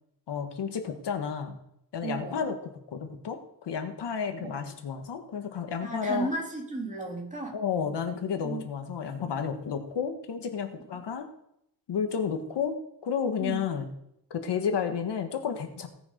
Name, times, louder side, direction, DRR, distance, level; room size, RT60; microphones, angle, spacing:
voice 1, 0.3-1.6 1.9-6.3 7.5-11.3 11.9-13.9 14.3-15.9, left 6 dB, 70° left, 6 dB, 1.6 m, -31 dB
voice 2, 2.0-2.4 4.4-4.7 5.8-7.6 8.4-8.6 13.4-13.6, right 2 dB, 15° right, -1 dB, 2.5 m, -34 dB
17.0 x 7.1 x 5.1 m, 0.78 s
wide cardioid pair, 170°, 43 cm